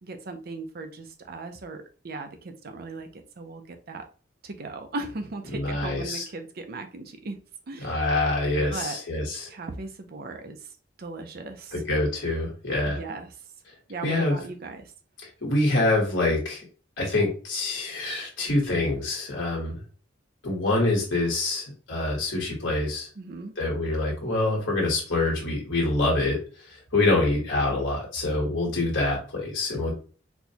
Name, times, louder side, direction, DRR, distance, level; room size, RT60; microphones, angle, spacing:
voice 1, 0.0-3.1 3.4-4.0 4.4-7.4 7.7-8.0 8.7-9.0 9.5-10.6 11.0-11.7 12.8-13.3 13.9-14.9 23.2-23.5, right 3 dB, 55° right, 6 dB, 0.5 m, -37 dB
voice 2, 5.5-6.2 7.8-9.5 11.7-13.0 14.0-14.4 15.4-16.7 17.0-19.8 20.4-23.1 23.6-26.4 26.9-29.9, left 2 dB, 75° left, -3 dB, 1.4 m, -25 dB
4.3 x 2.2 x 2.8 m, 0.38 s
head